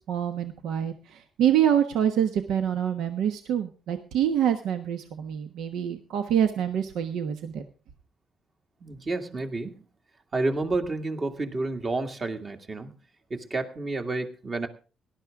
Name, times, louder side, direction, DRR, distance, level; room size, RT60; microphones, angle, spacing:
voice 1, 0.0-7.6, right 9 dB, 85° right, 7 dB, 1.2 m, -26 dB
voice 2, 8.8-9.7 10.3-12.9 13.3-14.7, right 2 dB, 35° right, 5 dB, 2.1 m, -30 dB
18.0 x 12.0 x 3.6 m, 0.34 s
cardioid pair, 90°, 0 cm